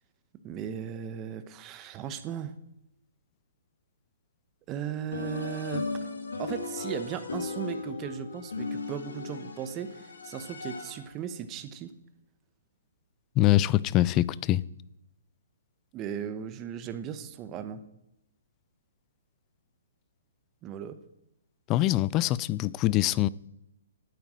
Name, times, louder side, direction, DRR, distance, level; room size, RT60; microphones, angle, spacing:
voice 1, 0.4-2.5 4.7-6.1 6.4-11.9 15.9-17.8 20.6-21.0, right 9 dB, 25° right, 1.0 m, -37 dB
sound 1, 5.1-11.2, left 4 dB, 90° left, 2.2 m, -37 dB
voice 2, 13.4-14.6 21.7-23.3, left 15 dB, 25° left, 0.4 m, -24 dB
9.2 x 9.0 x 7.5 m
hypercardioid pair, 145°, 0 cm